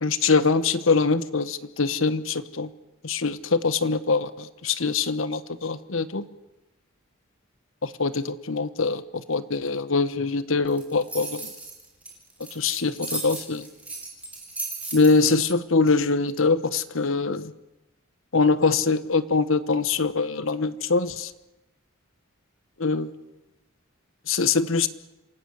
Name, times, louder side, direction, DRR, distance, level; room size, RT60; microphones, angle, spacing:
voice 1, 0.0-2.7 3.0-6.3 7.8-11.5 12.5-13.6 14.9-17.5 18.3-21.3 22.8-23.1 24.3-24.9, left 4 dB, 80° left, 14 dB, 1.2 m, -23 dB
sound 1, 10.7-15.5, right 3 dB, 5° right, 5.2 m, -35 dB
27.0 x 18.0 x 8.0 m, 0.96 s
head